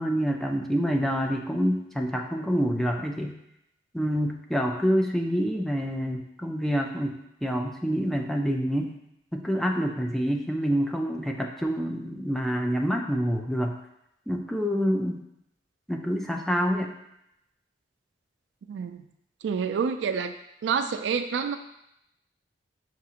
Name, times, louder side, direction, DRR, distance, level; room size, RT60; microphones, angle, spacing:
voice 1, 0.0-3.3 3.9-8.9 9.3-13.8 14.3-15.2 15.9-16.9, equal, ahead, 2 dB, 0.3 m, -27 dB
voice 2, 18.7-19.0 19.4-20.3 20.6-21.6, right 6 dB, 85° right, 9 dB, 0.3 m, -28 dB
5.9 x 2.4 x 2.8 m, 0.80 s
head